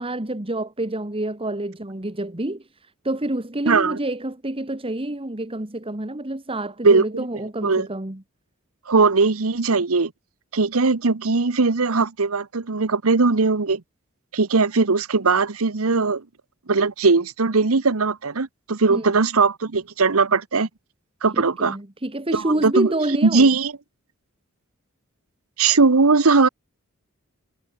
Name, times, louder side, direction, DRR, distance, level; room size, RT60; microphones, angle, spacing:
voice 1, 0.0-8.2 18.9-19.1 21.3-23.5, right 1 dB, 25° right, 1.8 m, -28 dB
voice 2, 3.7-4.0 6.8-7.3 7.6-7.9 8.9-10.1 10.5-13.8 14.3-16.2 16.7-20.7 21.2-21.8 22.3-22.9 23.2-23.7 25.6-26.5, right 4 dB, 90° right, 1.1 m, -19 dB
head